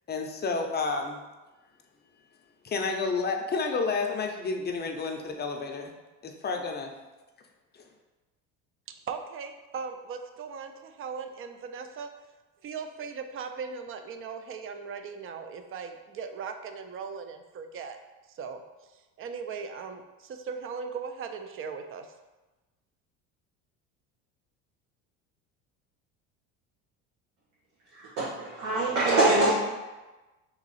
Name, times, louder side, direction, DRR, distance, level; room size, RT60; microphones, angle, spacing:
voice 1, 0.1-1.2 2.6-5.9 6.2-6.9, left 4 dB, 25° left, 4 dB, 0.6 m, -30 dB
voice 2, 9.1-12.1 12.6-18.0 18.4-18.6 19.2-22.1, right 5 dB, 35° right, 7 dB, 0.5 m, -38 dB
voice 3, 28.0-29.5, right 2 dB, 90° right, -9 dB, 1.4 m, -24 dB
3.6 x 3.0 x 4.1 m, 1.1 s
supercardioid pair, 90°, 38 cm